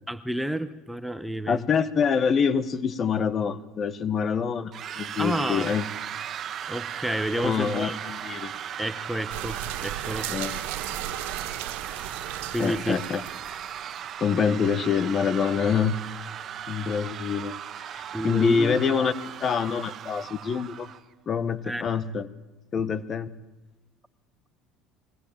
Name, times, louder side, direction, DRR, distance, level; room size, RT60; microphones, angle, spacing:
voice 1, 0.1-1.7 5.2-5.7 6.7-8.0 8.8-10.3 12.5-13.0 18.1-18.8 21.6-21.8, right 1 dB, 5° right, 11 dB, 1.0 m, -30 dB
voice 2, 1.5-5.8 7.4-8.5 10.3-10.6 12.6-13.2 14.2-15.9 16.7-19.1 19.4-20.9 21.3-22.3 22.7-23.3, left 6 dB, 35° left, 15 dB, 1.3 m, -26 dB
sound 1, 4.7-21.0, right 9 dB, 45° right, 1.3 m, -37 dB
sound 2, 9.3-14.2, right 13 dB, 85° right, 1.8 m, -36 dB
22.0 x 17.5 x 8.8 m, 1.1 s
supercardioid pair, 110°, 0 cm